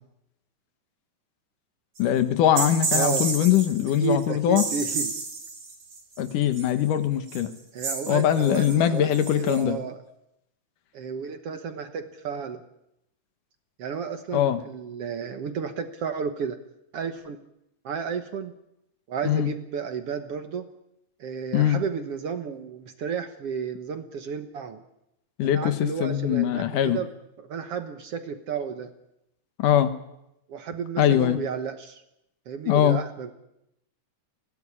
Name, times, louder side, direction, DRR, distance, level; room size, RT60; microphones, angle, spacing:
voice 1, 2.0-4.6 6.2-7.5 8.1-9.8 14.3-14.6 19.3-19.5 21.5-21.8 25.4-27.0 29.6-29.9 31.0-31.4 32.7-33.0, left 11 dB, 80° left, 10 dB, 2.8 m, -22 dB
sound 1, 2.0-2.1 2.6-4.2 4.5-6.7 7.3-7.5 7.8-9.6, right 4 dB, 80° right, 6.1 m, -31 dB
voice 2, 2.9-3.3 4.0-5.1 7.7-10.0 10.9-12.6 13.8-16.6 16.9-17.4 17.8-18.5 19.1-20.7 21.2-24.8 25.4-27.1 27.4-28.9 30.5-32.0 32.5-33.3, right 6 dB, 60° right, 8 dB, 1.8 m, -32 dB
20.5 x 16.5 x 9.9 m, 0.84 s
omnidirectional pair, 3.6 m